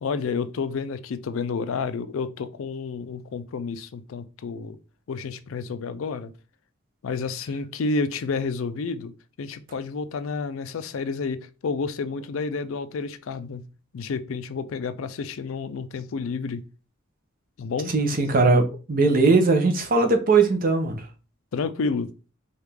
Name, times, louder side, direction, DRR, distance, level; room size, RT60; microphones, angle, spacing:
voice 1, 0.0-4.8 5.1-6.3 7.0-9.1 9.4-13.6 13.9-16.6 17.6-17.9 21.5-22.1, left 4 dB, 70° left, 0.4 m, -30 dB
voice 2, 17.9-21.0, right 3 dB, 40° right, 0.7 m, -20 dB
4.7 x 2.4 x 3.3 m
head